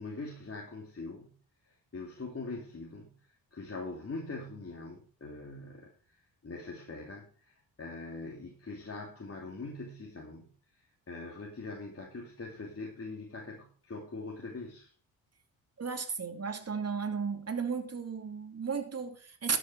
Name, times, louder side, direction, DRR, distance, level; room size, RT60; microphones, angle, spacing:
voice 1, 0.0-1.4 1.6-14.9, left 3 dB, 35° left, 2.8 m, -43 dB
voice 2, 15.8-19.6, right 5 dB, 35° right, 2.6 m, -34 dB
13.0 x 7.4 x 4.9 m
supercardioid pair, 55°, 43 cm